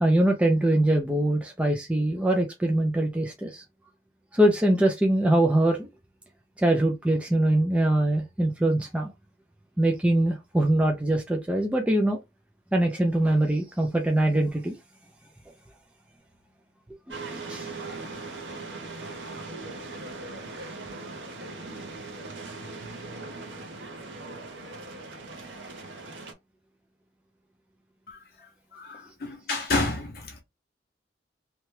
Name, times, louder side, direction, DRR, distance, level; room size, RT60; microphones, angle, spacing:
voice 1, 0.0-3.6 4.3-5.9 6.6-9.1 9.8-12.2 12.7-14.8 17.3-17.7, right 1 dB, 5° right, 0.3 m, -23 dB
sound 1, 17.1-26.3, right 3 dB, 85° right, 0.8 m, -39 dB
voice 2, 28.7-30.4, left 3 dB, 55° left, 0.6 m, -30 dB
2.8 x 2.2 x 3.1 m
head